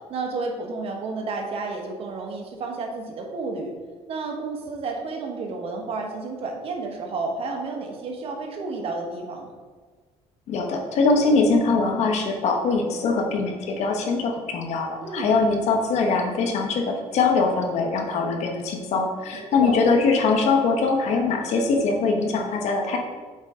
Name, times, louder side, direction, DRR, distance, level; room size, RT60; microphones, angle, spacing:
voice 1, 0.1-3.7 4.1-9.5 14.9-15.3 19.3-19.7, right 3 dB, 55° right, 1 dB, 1.3 m, -31 dB
voice 2, 10.5-23.0, left 4 dB, 70° left, 3 dB, 1.1 m, -22 dB
7.3 x 4.9 x 3.7 m, 1.4 s
cardioid pair, 110°, 12 cm